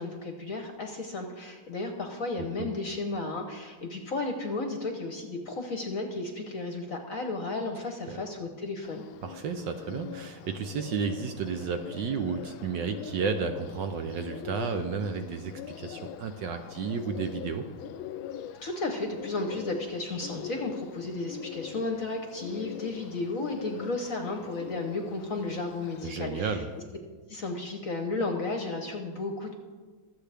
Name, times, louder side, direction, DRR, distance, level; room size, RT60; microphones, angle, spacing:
voice 1, 0.0-9.0 18.6-26.6 27.3-29.5, left 2 dB, 50° left, 4 dB, 1.1 m, -33 dB
voice 2, 2.4-2.7 8.1-8.2 9.2-17.7 26.0-26.7, right 5 dB, 65° right, 7 dB, 1.3 m, -32 dB
Bird, 8.8-26.1, left 10 dB, 75° left, 1.2 m, -43 dB
23.5 x 7.9 x 3.5 m, 1.4 s
omnidirectional pair, 2.4 m